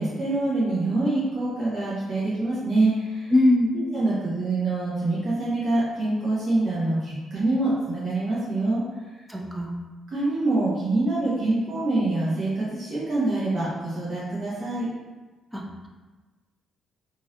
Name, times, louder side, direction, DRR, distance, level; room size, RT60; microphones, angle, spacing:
voice 1, 0.0-3.3 3.7-8.8 10.1-14.9, right 2 dB, 55° right, -9 dB, 1.0 m, -25 dB
voice 2, 3.3-3.8 9.3-9.7 15.5-15.9, left 1 dB, 5° right, 0 dB, 0.5 m, -22 dB
3.1 x 2.7 x 2.7 m, 1.2 s
cardioid pair, 90°, 0 cm